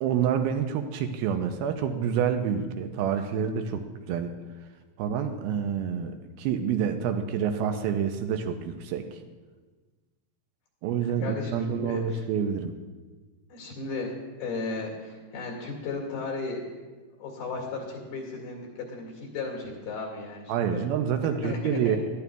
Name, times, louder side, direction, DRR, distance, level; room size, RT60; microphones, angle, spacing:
voice 1, 0.0-4.3 5.0-9.2 10.8-12.8 20.5-22.0, right 8 dB, 85° right, 6 dB, 2.4 m, -28 dB
voice 2, 11.0-12.2 13.5-14.1 14.4-16.6 17.2-20.8 21.4-22.0, left 3 dB, 75° left, -1 dB, 4.1 m, -35 dB
18.5 x 12.5 x 2.4 m, 1.3 s
omnidirectional pair, 4.5 m